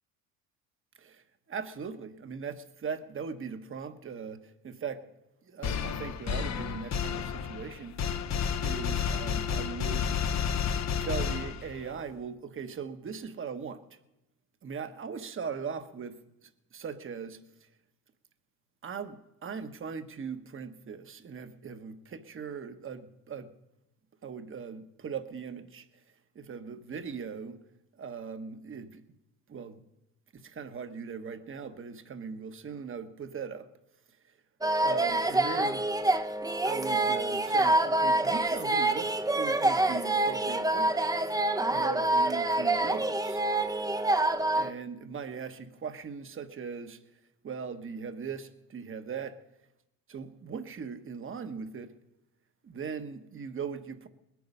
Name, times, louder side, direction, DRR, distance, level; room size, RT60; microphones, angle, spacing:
voice 1, 1.0-5.0 5.4-8.4 8.6-10.3 11.0-14.0 14.6-17.7 18.8-23.5 24.2-25.9 26.3-27.6 28.0-29.0 29.5-29.8 30.3-33.7 34.2-34.3 34.8-35.8 36.6-41.0 41.7-43.4 44.5-47.0 47.4-49.4 50.1-51.9 52.6-54.1, right 6 dB, 35° right, 1.2 m, -39 dB
sound 1, 5.6-12.0, left 7 dB, 45° left, 1.0 m, -31 dB
sound 2, 34.6-44.7, right 2 dB, 10° right, 0.7 m, -26 dB
20.5 x 9.4 x 5.5 m
supercardioid pair, 85°, 37 cm